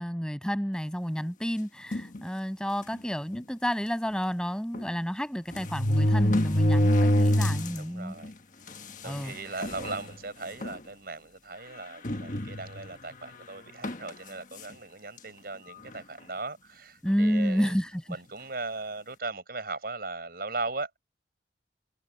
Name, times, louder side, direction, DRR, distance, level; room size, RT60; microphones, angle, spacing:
voice 1, 0.0-8.1 9.0-9.3 17.0-18.0, equal, 5° left, 6.6 m, -30 dB
sound 1, 1.9-2.2 2.9-3.0 3.3-3.4 4.7-4.8 5.5-7.8 8.2-8.3 9.2-9.3 9.6-10.0 10.6-10.8 12.0-12.9 13.8-14.1, left 1 dB, 45° left, 1.4 m, -25 dB
voice 2, 7.8-8.3 9.0-17.7 18.1-21.0, right 3 dB, 55° right, 7.8 m, -38 dB
head